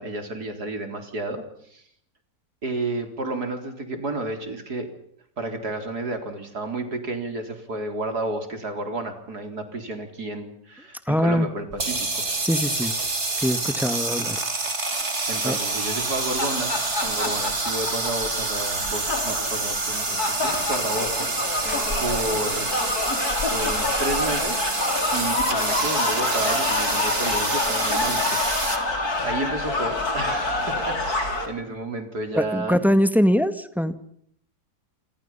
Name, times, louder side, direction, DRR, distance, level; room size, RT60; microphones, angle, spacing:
voice 1, 0.0-1.8 2.6-4.9 5.4-12.2 12.8-12.9 13.4-13.5 15.3-16.7 17.0-22.7 23.0-23.1 23.5-24.7 25.1-28.4 29.2-32.8, right 2 dB, 65° right, 6 dB, 4.5 m, -31 dB
voice 2, 11.1-11.5 12.4-12.9 13.3-14.4 15.4-15.6 32.3-33.9, equal, ahead, 10 dB, 1.7 m, -22 dB
sound 1, 11.7-28.8, right 3 dB, 40° right, 3.3 m, -27 dB
sound 2, 16.1-31.5, left 2 dB, 60° left, 4.8 m, -27 dB
28.0 x 24.5 x 5.8 m, 0.71 s
omnidirectional pair, 1.8 m